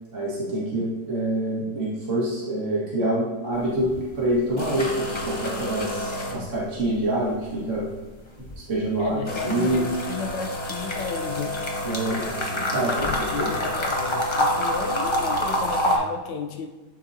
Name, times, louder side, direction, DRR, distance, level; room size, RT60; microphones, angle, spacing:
voice 1, 0.1-5.0 5.2-7.9 8.4-9.2 9.4-9.9 11.8-13.1 13.4-13.5, right 1 dB, 45° right, -7 dB, 2.1 m, -26 dB
sound 1, 3.5-4.0 4.3-6.9 7.2-16.0, left 1 dB, 30° left, 0.5 m, -27 dB
voice 2, 9.0-11.6 12.8-16.7, left 5 dB, 90° left, 4 dB, 1.4 m, -33 dB
11.5 x 4.0 x 2.8 m, 1.2 s
omnidirectional pair, 1.8 m